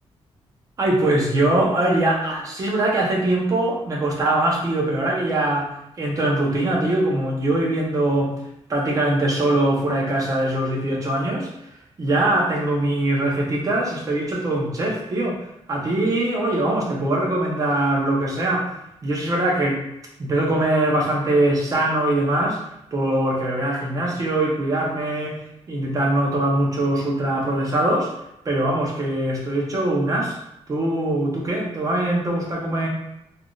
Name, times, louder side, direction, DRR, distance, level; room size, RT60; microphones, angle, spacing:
voice 1, 0.8-5.7 6.0-8.3 8.7-11.5 12.0-15.4 15.7-18.7 19.0-19.8 20.2-22.6 22.9-25.4 25.7-28.1 28.4-30.4 30.7-32.9, right 1 dB, 30° right, -2 dB, 0.7 m, -22 dB
3.4 x 2.5 x 2.3 m, 0.81 s
wide cardioid pair, 165°, 11 cm